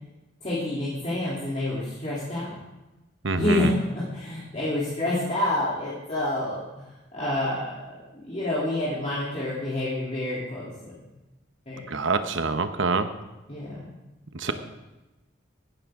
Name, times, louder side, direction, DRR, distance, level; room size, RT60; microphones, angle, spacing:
voice 1, 0.4-2.5 3.3-6.6 7.1-7.7 8.1-10.9 11.7-11.8 13.5-13.8 14.5-14.6, left 1 dB, 35° left, -9 dB, 3.1 m, -28 dB
voice 2, 3.2-3.7 11.9-13.1 14.3-14.5, right 4 dB, 70° right, 9 dB, 0.9 m, -25 dB
15.5 x 11.5 x 3.7 m, 1.1 s
head